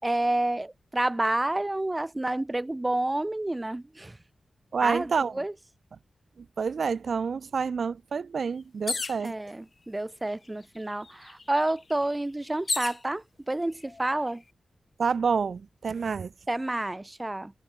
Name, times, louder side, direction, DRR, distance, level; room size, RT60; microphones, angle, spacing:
voice 1, 0.0-4.2 4.8-5.5 9.2-14.4 16.5-17.5, right 1 dB, 15° right, 6.8 m, -29 dB
voice 2, 4.7-5.3 6.6-9.3 15.0-16.3, right 5 dB, 65° right, 2.7 m, -28 dB
sound 1, 8.9-9.3 10.2-10.3 10.6-13.0 13.8-14.3, left 3 dB, 40° left, 7.5 m, -33 dB
wide cardioid pair, 115°, 0 cm